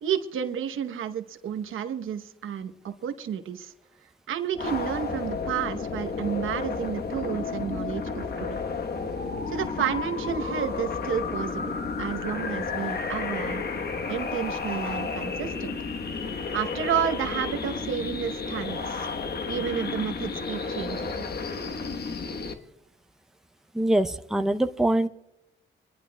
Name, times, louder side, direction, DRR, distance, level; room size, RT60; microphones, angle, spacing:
voice 1, 0.0-3.7 4.3-8.6 9.5-13.6 14.1-15.8 16.5-19.1 19.5-21.2, right 8 dB, 85° right, 8 dB, 0.9 m, -31 dB
sound 1, 4.5-22.5, left 4 dB, 50° left, 1.2 m, -32 dB
voice 2, 23.7-25.1, right 1 dB, ahead, 7 dB, 0.6 m, -23 dB
26.0 x 11.0 x 2.2 m, 0.86 s
cardioid pair, 75°, 20 cm